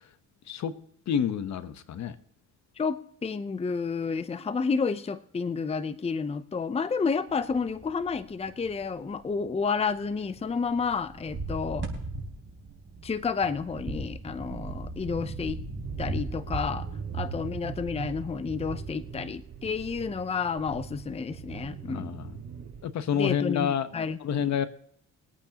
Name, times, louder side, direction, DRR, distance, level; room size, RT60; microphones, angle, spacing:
voice 1, 0.5-0.8 1.1-2.1 21.9-22.4 22.8-24.7, left 8 dB, 65° left, 12 dB, 1.1 m, -29 dB
voice 2, 2.8-11.9 13.0-15.6 16.0-16.9 17.1-22.2 23.1-24.5, left 5 dB, 20° left, 13 dB, 0.6 m, -30 dB
sound 1, 7.3-19.3, right 2 dB, 40° right, 3.8 m, -39 dB
sound 2, 15.8-22.8, right 7 dB, 70° right, 4.7 m, -40 dB
23.0 x 8.8 x 2.9 m, 0.69 s
cardioid pair, 90°, 30 cm